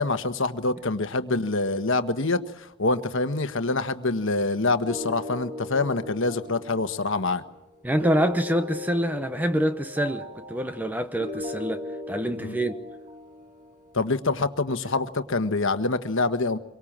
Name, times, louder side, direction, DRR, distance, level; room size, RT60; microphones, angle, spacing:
voice 1, 0.0-7.4 12.4-12.6 13.9-16.6, left 3 dB, 60° left, 1.4 m, -26 dB
sound 1, 4.8-14.0, left 1 dB, 35° right, 3.1 m, -38 dB
voice 2, 7.8-12.8, equal, 5° right, 0.9 m, -26 dB
26.0 x 23.5 x 7.5 m
head